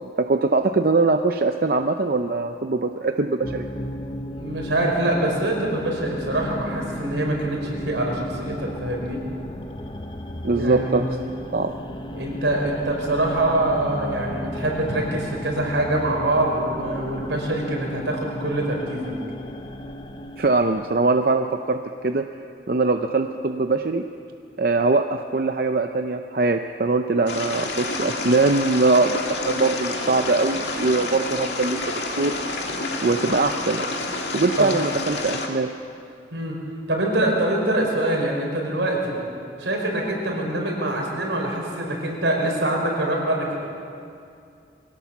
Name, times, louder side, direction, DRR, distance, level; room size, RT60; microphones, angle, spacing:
voice 1, 0.0-3.7 10.4-11.1 11.5-11.7 20.4-21.8 22.0-22.2 22.7-24.0 24.6-31.8 32.2-32.3 33.0-33.9 34.3-35.7, right 3 dB, 50° right, 6 dB, 0.6 m, -22 dB
sound 1, 3.4-20.9, left 1 dB, 25° left, 0.8 m, -35 dB
voice 2, 4.4-9.2 10.5-11.3 12.1-19.1 34.6-34.7 36.3-36.6 36.9-39.2 39.6-43.5, right 1 dB, 85° right, -1 dB, 5.1 m, -24 dB
sound 2, 27.3-35.5, left 2 dB, 65° left, 2.2 m, -29 dB
22.5 x 17.0 x 7.2 m, 2.5 s
head